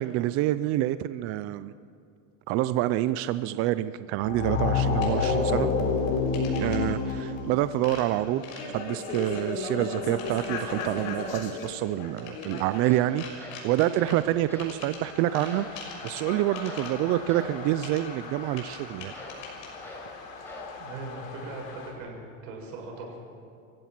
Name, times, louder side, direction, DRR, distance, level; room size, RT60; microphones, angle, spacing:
voice 1, 0.0-1.7 2.5-5.7 6.6-8.4 8.7-19.1, right 14 dB, 35° right, 13 dB, 0.4 m, -27 dB
sound 1, 4.2-13.1 14.5-21.9, left 4 dB, 80° left, 5.0 m, -32 dB
sound 2, 4.4-21.1, left 4 dB, 55° left, 6.3 m, -47 dB
sound 3, 12.3-12.4 12.7-14.2 14.5-14.7 15.0-15.1 15.4-16.2 16.6-16.9 17.2-17.6 19.1-19.4 19.8-20.1 20.4-20.7, left 1 dB, 5° left, 5.3 m, -45 dB
voice 2, 20.8-22.2 22.4-23.2, right 3 dB, 75° right, 0 dB, 7.2 m, -40 dB
28.5 x 15.5 x 6.0 m, 2.5 s
supercardioid pair, 145°, 39 cm